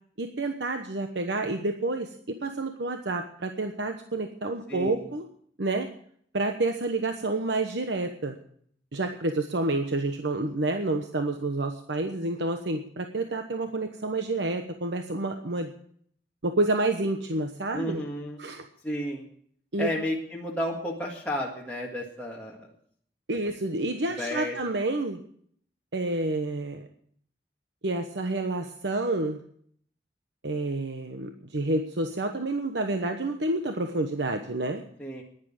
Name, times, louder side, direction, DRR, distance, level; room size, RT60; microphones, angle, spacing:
voice 1, 0.2-5.3 5.6-5.9 6.3-8.4 8.9-15.7 16.4-18.0 18.4-18.6 19.7-19.9 23.3-25.2 25.9-26.9 27.8-29.4 30.4-34.8, right 2 dB, 85° right, 5 dB, 1.1 m, -29 dB
voice 2, 4.7-5.1 17.7-18.4 18.8-19.2 19.8-22.7 24.0-24.6 35.0-35.2, equal, 10° left, -4 dB, 1.8 m, -32 dB
11.5 x 10.5 x 8.8 m, 0.63 s
head